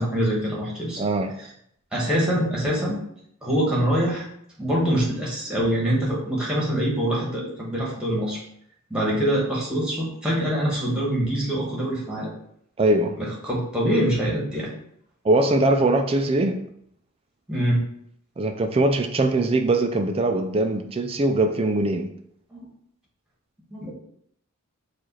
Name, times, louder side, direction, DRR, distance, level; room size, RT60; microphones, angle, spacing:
voice 1, 0.0-1.0 1.4-1.5 1.9-3.0 3.4-4.2 4.6-8.4 8.9-12.3 13.2-14.7 17.5-17.8 22.5-22.7 23.7-23.9, equal, 5° right, -5 dB, 1.2 m, -24 dB
voice 2, 1.0-1.3 12.8-13.2 15.2-16.6 18.4-22.1, right 2 dB, 25° right, 6 dB, 0.3 m, -21 dB
4.7 x 2.4 x 4.1 m, 0.70 s
head